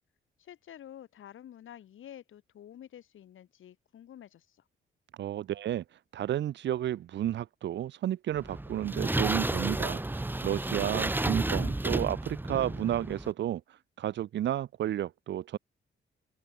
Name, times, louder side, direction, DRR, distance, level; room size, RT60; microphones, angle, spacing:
voice 1, 0.4-4.6 11.3-11.9, left 10 dB, 75° left, 2.2 m, -50 dB
voice 2, 5.2-5.8 6.1-13.6 14.0-15.6, right 12 dB, 60° right, 0.4 m, -32 dB
sound 1, 8.4-13.3, right 2 dB, 10° right, 0.7 m, -31 dB
open air
supercardioid pair, 60°, 21 cm